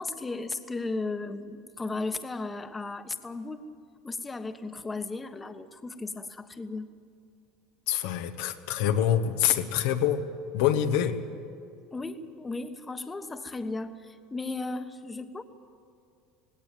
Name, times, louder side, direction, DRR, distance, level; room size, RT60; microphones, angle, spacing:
voice 1, 0.0-3.7 4.0-6.9 11.9-15.4, left 3 dB, 20° left, 9 dB, 1.3 m, -35 dB
voice 2, 7.9-10.2 10.5-11.2, left 10 dB, 70° left, 7 dB, 1.3 m, -25 dB
18.5 x 17.5 x 9.1 m, 2.4 s
hypercardioid pair, 85°, 0 cm